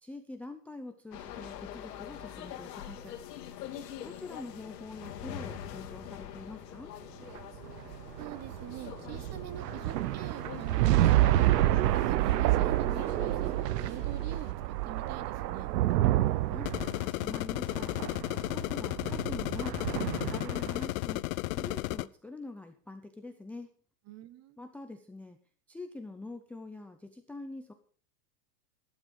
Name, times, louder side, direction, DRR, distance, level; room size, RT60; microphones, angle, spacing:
voice 1, 0.0-3.2 4.0-6.9 16.4-18.0 18.5-23.7 24.6-25.4 25.7-27.7, left 2 dB, 5° left, 8 dB, 0.5 m, -45 dB
sound 1, 1.1-14.5, left 10 dB, 85° left, 2.5 m, -45 dB
sound 2, 7.2-20.8, right 15 dB, 80° right, 0.9 m, -29 dB
voice 2, 8.2-11.5 12.1-15.7 24.1-24.6, right 11 dB, 35° right, 15 dB, 1.2 m, -45 dB
sound 3, 16.6-22.1, left 20 dB, 60° left, 0.7 m, -34 dB
13.0 x 11.5 x 5.2 m, 0.42 s
supercardioid pair, 145°, 47 cm